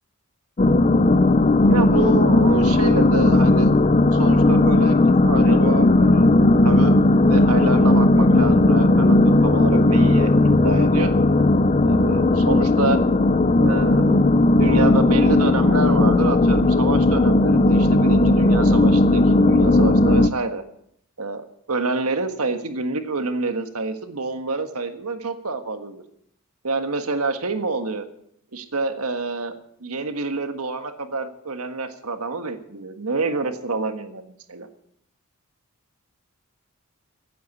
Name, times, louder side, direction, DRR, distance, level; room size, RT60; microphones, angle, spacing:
sound 1, 0.6-20.3, left 2 dB, 30° left, 0.5 m, -16 dB
voice 1, 1.7-3.7 4.1-6.3 6.6-7.0 7.2-10.3 10.6-11.1 11.8-13.0 13.6-14.3 14.6-20.6 21.2-26.0 26.6-28.0 28.5-29.5 29.8-34.7, right 3 dB, 85° right, 7 dB, 1.6 m, -27 dB
16.0 x 8.5 x 8.4 m, 0.68 s
head